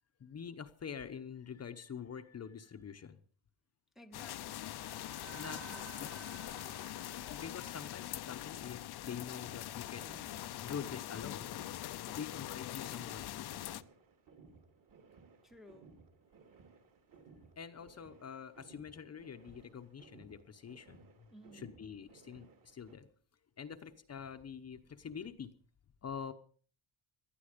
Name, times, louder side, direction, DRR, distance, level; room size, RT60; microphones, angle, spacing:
voice 1, 0.2-3.2 5.3-5.6 6.0-6.1 7.3-10.2 10.6-11.6 12.2-13.7 17.6-21.3 21.5-23.1 23.6-25.5 26.0-26.3, left 7 dB, 30° left, 8 dB, 0.9 m, -46 dB
voice 2, 3.9-4.8 5.7-5.9 15.4-15.9 21.3-21.7, left 1 dB, ahead, 4 dB, 0.9 m, -57 dB
sound 1, 4.1-13.8, left 13 dB, 50° left, 0.7 m, -43 dB
sound 2, 4.4-8.9, right 8 dB, 65° right, 2.0 m, -55 dB
sound 3, 9.1-23.0, right 4 dB, 40° right, 2.5 m, -61 dB
18.5 x 12.5 x 5.1 m, 0.43 s
cardioid pair, 160°, 49 cm